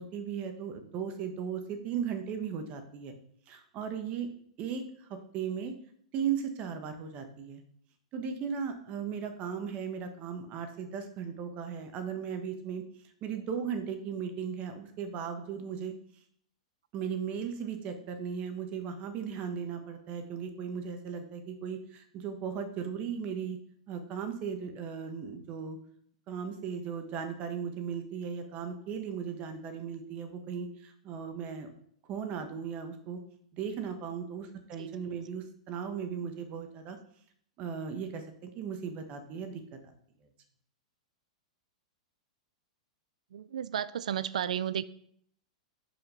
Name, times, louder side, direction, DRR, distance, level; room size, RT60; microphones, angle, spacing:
voice 1, 0.0-3.1 3.5-4.3 4.6-5.1 5.3-5.7 6.1-7.6 8.1-12.8 13.2-15.9 16.9-23.6 23.9-25.8 26.3-31.7 32.1-33.2 33.5-37.0 37.6-39.9, right 7 dB, 35° right, 1.2 m, -37 dB
voice 2, 43.3-44.8, right 9 dB, 80° right, 0.4 m, -33 dB
5.4 x 4.9 x 5.7 m
hypercardioid pair, 125°, 4 cm